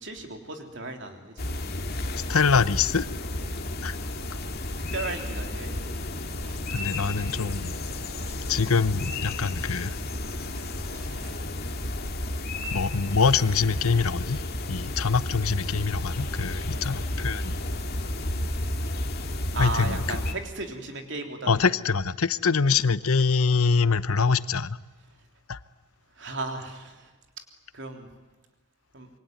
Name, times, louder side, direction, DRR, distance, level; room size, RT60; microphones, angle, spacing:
voice 1, 0.0-1.3 3.4-3.6 4.9-6.0 16.7-16.9 19.5-21.6 26.2-27.1 27.7-28.1 28.9-29.1, right 3 dB, 55° right, 4 dB, 3.5 m, -35 dB
sound 1, 1.4-20.3, left 1 dB, 45° left, 2.4 m, -32 dB
voice 2, 2.3-3.1 3.8-3.9 6.7-7.7 8.5-9.9 12.7-14.4 14.7-17.6 19.6-20.2 21.5-24.8 25.5-25.6, left 5 dB, 75° left, 16 dB, 0.9 m, -24 dB
sound 2, 6.3-6.6 6.9-7.3 7.6-11.9, right 1 dB, 80° right, 3.8 m, -49 dB
26.5 x 23.5 x 9.5 m, 1.2 s
head